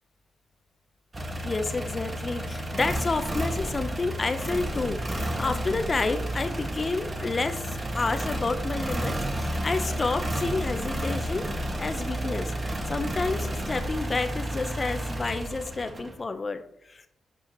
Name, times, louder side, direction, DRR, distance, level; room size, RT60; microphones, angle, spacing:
sound 1, 1.1-16.2, right 1 dB, 35° right, 1.6 m, -31 dB
voice 1, 1.4-7.6 7.9-11.5 11.8-12.5 12.9-17.1, left 3 dB, 40° left, 9 dB, 0.8 m, -30 dB
11.0 x 4.8 x 3.1 m, 0.78 s
hypercardioid pair, 45°, 0 cm